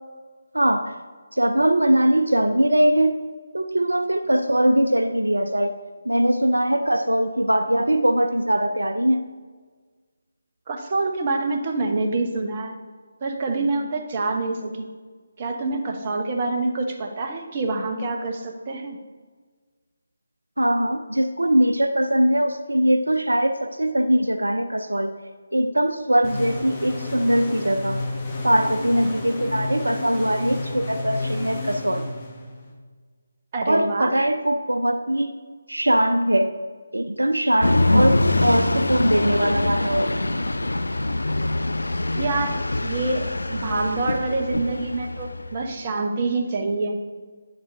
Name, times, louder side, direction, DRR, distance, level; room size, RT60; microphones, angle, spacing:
voice 1, 0.5-0.9 1.4-3.2 3.5-5.7 6.1-9.2 20.6-25.1 25.5-28.0 28.4-32.0 33.7-35.3 35.7-36.5 36.9-40.2, right 1 dB, 80° right, 8 dB, 0.5 m, -21 dB
voice 2, 10.7-12.8 13.2-14.9 15.4-19.0 33.5-34.2 42.1-47.0, right 3 dB, 35° right, 3 dB, 0.9 m, -26 dB
sound 1, 26.2-32.7, left 2 dB, 25° left, 1.5 m, -31 dB
sound 2, 37.6-45.6, left 2 dB, 75° left, 0.4 m, -24 dB
9.5 x 7.8 x 2.6 m, 1.5 s
figure-of-eight pair, 150°, 0 cm